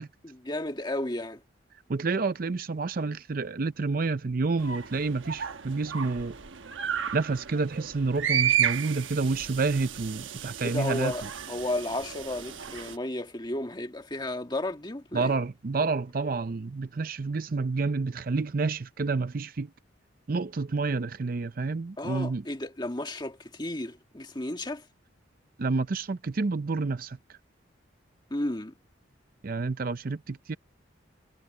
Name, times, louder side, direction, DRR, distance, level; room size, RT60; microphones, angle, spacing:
voice 1, 0.2-1.4 10.6-15.3 22.0-24.8 28.3-28.7, left 1 dB, 25° left, 1.7 m, -33 dB
voice 2, 1.9-6.4 7.1-11.1 15.1-19.7 20.3-22.4 25.6-27.4 29.4-30.6, right 4 dB, 50° right, 0.5 m, -29 dB
sound 1, 4.6-13.0, right 9 dB, 90° right, 1.1 m, -32 dB
head